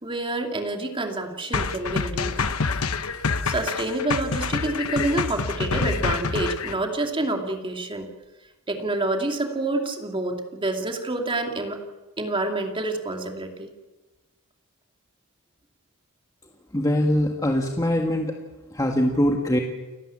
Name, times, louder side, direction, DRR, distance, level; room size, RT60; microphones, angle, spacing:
voice 1, 0.0-2.4 3.4-8.1 8.7-11.8 12.2-13.7, right 2 dB, 25° right, 3 dB, 2.5 m, -28 dB
sound 1, 1.5-6.7, left 4 dB, 75° left, 1.1 m, -27 dB
voice 2, 16.7-18.3 18.7-19.6, left 1 dB, 15° left, 2 dB, 1.7 m, -22 dB
29.5 x 13.0 x 8.8 m, 1.2 s
head